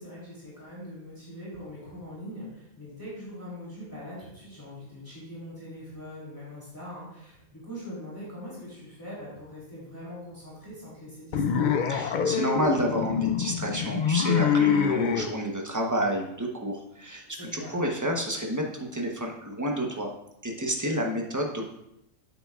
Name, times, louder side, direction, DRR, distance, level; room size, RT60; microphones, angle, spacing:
voice 1, 0.0-11.7 17.3-17.8, equal, 15° left, -8 dB, 3.1 m, -42 dB
sound 1, 11.3-15.3, left 7 dB, 70° left, 0.4 m, -25 dB
voice 2, 11.9-20.1 20.4-21.6, equal, 15° right, 0 dB, 0.9 m, -29 dB
9.0 x 8.0 x 2.4 m, 0.80 s
omnidirectional pair, 1.4 m